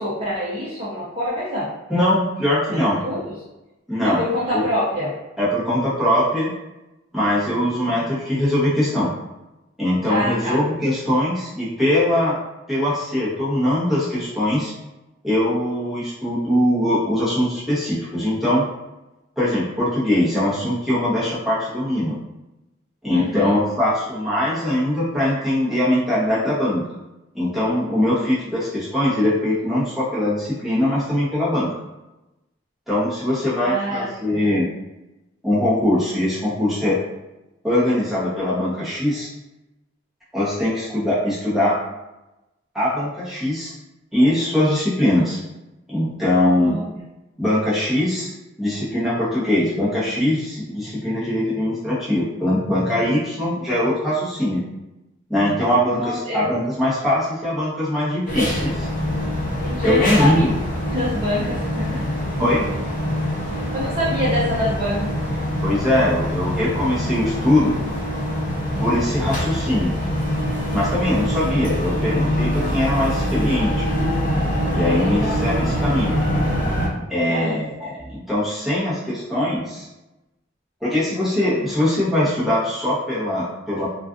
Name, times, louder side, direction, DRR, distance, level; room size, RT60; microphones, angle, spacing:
voice 1, 0.0-1.7 2.7-3.3 4.0-5.1 10.1-10.6 23.1-23.5 33.6-34.4 46.6-46.8 55.9-56.4 59.6-60.5 60.9-62.0 63.7-65.1 75.0-75.3 77.3-77.5, equal, 30° right, -8 dB, 0.6 m, -25 dB
voice 2, 1.9-3.0 3.9-4.2 4.5-4.6 5.4-6.5 7.1-9.1 9.8-12.4 12.7-14.7 15.2-18.7 19.4-22.2 23.0-26.8 27.3-31.7 32.9-34.7 35.4-37.0 37.6-39.3 40.3-41.8 42.7-43.7 44.1-45.4 45.9-46.8 47.4-48.3 48.6-54.6 55.3-58.9 59.8-60.5 62.4-62.7 65.6-67.8 68.8-69.9 70.7-73.8 74.7-76.2 77.1-79.9 80.8-83.9, left 1 dB, ahead, -10 dB, 0.8 m, -21 dB
sound 1, 58.3-76.9, equal, 45° left, 0.7 m, -24 dB
2.4 x 2.3 x 2.4 m, 0.98 s
head